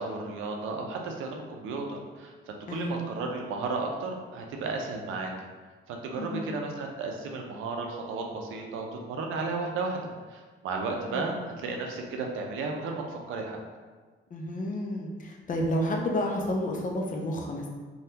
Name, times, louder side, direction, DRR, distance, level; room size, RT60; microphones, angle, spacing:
voice 1, 0.0-5.3 5.9-10.0 10.3-13.6, right 3 dB, 85° right, 1 dB, 0.5 m, -34 dB
voice 2, 2.7-3.1 6.2-6.5 11.1-11.3 14.3-17.7, left 1 dB, 40° left, 0 dB, 0.6 m, -31 dB
3.3 x 2.3 x 2.8 m, 1.4 s
cardioid pair, 90°, 20 cm